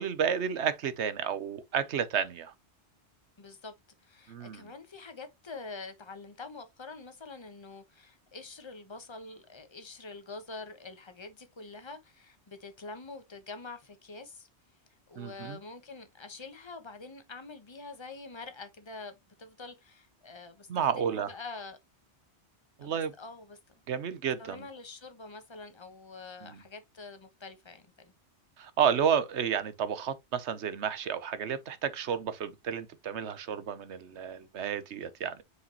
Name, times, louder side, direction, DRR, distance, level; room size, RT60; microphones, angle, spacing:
voice 1, 0.0-2.5 4.3-4.6 15.2-15.6 20.7-21.3 22.8-23.1 23.9-24.7 26.4-26.6 28.6-35.4, right 8 dB, 80° right, 1.1 m, -31 dB
voice 2, 3.4-3.7 4.0-14.5 15.1-21.8 22.8-23.6 24.4-28.1, left 3 dB, 25° left, 1.1 m, -46 dB
6.5 x 4.9 x 2.9 m
omnidirectional pair, 1.2 m